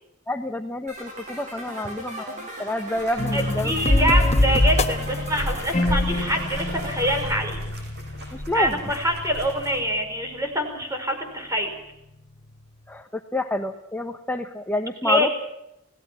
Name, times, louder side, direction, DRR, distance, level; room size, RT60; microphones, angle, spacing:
voice 1, 0.3-3.7 8.3-8.8 12.9-15.3, left 1 dB, 10° left, 5 dB, 1.0 m, -28 dB
sound 1, 0.9-7.2, right 1 dB, 35° right, 7.9 m, -37 dB
sound 2, 2.9-9.8, equal, 55° right, 6.6 m, -35 dB
sound 3, 3.2-10.0, left 1 dB, 30° left, 1.2 m, -25 dB
voice 2, 3.3-7.6 8.5-11.7 15.0-15.3, equal, 15° right, 4 dB, 5.4 m, -25 dB
29.5 x 18.5 x 5.9 m, 0.84 s
head